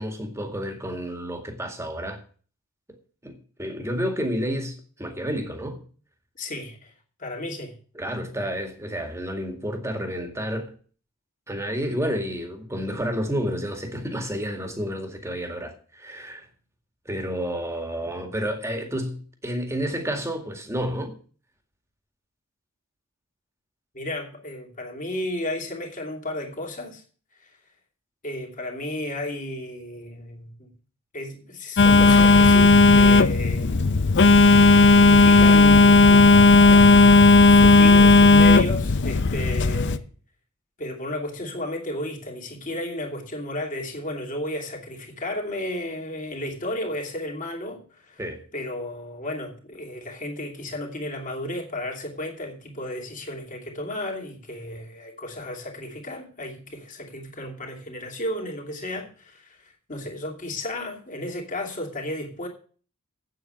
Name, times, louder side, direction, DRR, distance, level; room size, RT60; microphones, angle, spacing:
voice 1, 0.0-2.2 3.2-5.8 8.0-10.7 11.5-16.5 17.1-19.2 19.4-21.1 48.2-48.4, equal, 15° right, 2.1 m, -30 dB
voice 2, 6.3-6.9 7.2-7.8 23.9-27.0 27.4-27.6 28.2-30.7 31.1-33.8 34.8-36.4 37.5-40.0 40.8-48.2 48.5-62.5, left 1 dB, 35° left, 2.9 m, -33 dB
Telephone, 31.8-40.0, left 3 dB, 55° left, 0.6 m, -14 dB
8.6 x 7.9 x 9.2 m
head